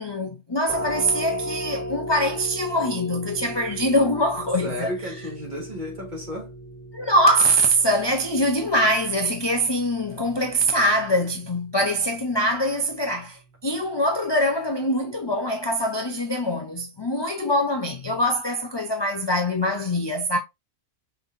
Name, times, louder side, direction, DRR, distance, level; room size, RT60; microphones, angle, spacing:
voice 1, 0.0-4.9 6.9-20.4, equal, 30° left, 0.5 m, -23 dB
sound 1, 0.7-12.2, equal, 5° left, 2.6 m, -36 dB
voice 2, 4.6-6.5, equal, 35° right, 2.2 m, -33 dB
5.4 x 3.9 x 2.5 m
omnidirectional pair, 1.4 m